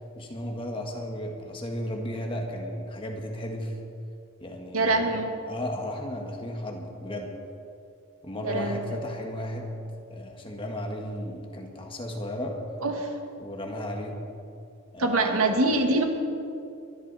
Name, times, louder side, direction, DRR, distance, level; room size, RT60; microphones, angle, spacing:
voice 1, 0.1-3.7 4.4-7.3 8.2-9.8 10.1-12.6 13.4-14.2 14.9-15.8, equal, 25° left, 1 dB, 1.7 m, -35 dB
voice 2, 4.7-5.3 8.4-8.8 12.8-13.1 15.0-16.0, right 2 dB, 80° right, 3 dB, 1.7 m, -24 dB
22.0 x 12.0 x 4.2 m, 2.6 s
head